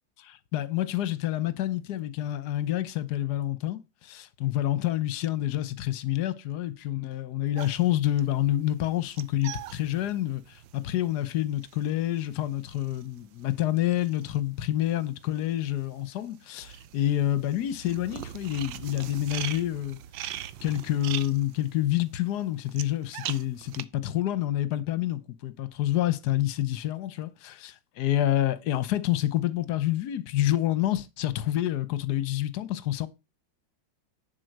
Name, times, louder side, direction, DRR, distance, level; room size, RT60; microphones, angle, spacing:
voice 1, 0.5-20.0 20.6-33.1, left 13 dB, 60° left, 1.2 m, -28 dB
sound 1, 7.6-15.1 15.3-23.8, right 11 dB, 70° right, 1.2 m, -41 dB
10.5 x 4.6 x 6.6 m
omnidirectional pair, 2.4 m